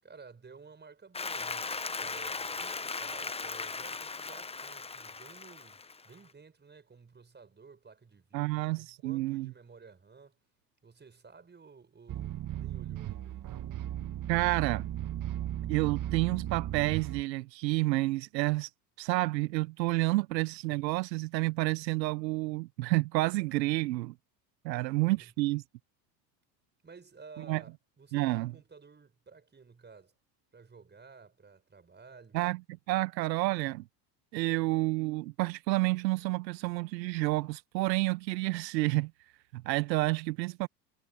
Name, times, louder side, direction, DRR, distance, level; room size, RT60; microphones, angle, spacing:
voice 1, 0.0-10.4 10.8-13.5 24.7-25.3 26.8-30.1 30.5-32.4, right 5 dB, 20° right, 6.4 m, -54 dB
Applause, 1.1-6.2, left 4 dB, 10° left, 1.0 m, -38 dB
voice 2, 8.3-9.5 14.3-14.9 15.7-18.7 19.0-24.1 24.6-25.6 27.5-27.6 28.1-28.5 32.3-32.6 32.9-33.8 34.3-39.1 39.5-40.7, right 21 dB, 80° right, 1.0 m, -29 dB
sound 1, 12.1-17.2, right 12 dB, 40° right, 1.8 m, -36 dB
hypercardioid pair, 95°, 50 cm